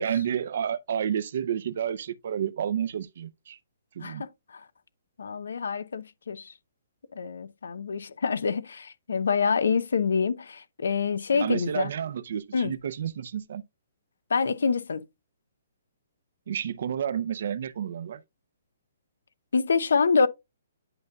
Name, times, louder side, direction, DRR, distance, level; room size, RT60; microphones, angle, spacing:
voice 1, 0.0-3.6 3.9-4.2 11.3-13.6 16.5-18.2, right 9 dB, 55° right, 0.6 m, -30 dB
voice 2, 4.0-4.7 5.2-6.5 7.1-11.9 12.5-12.7 14.3-15.0 19.5-20.3, left 5 dB, 90° left, 0.8 m, -26 dB
11.0 x 5.3 x 2.3 m
hypercardioid pair, 170°, 0 cm